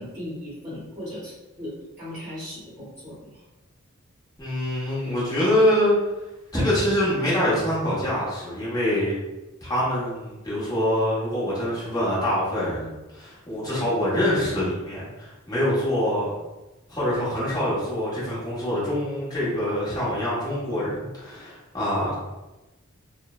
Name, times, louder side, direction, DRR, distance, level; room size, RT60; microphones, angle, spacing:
voice 1, 0.0-3.4, left 1 dB, 10° right, -11 dB, 1.2 m, -37 dB
voice 2, 4.4-6.0 6.5-9.1 9.6-16.3 16.9-22.1, left 1 dB, 20° left, -9 dB, 1.0 m, -25 dB
3.0 x 2.1 x 2.3 m, 1.1 s
head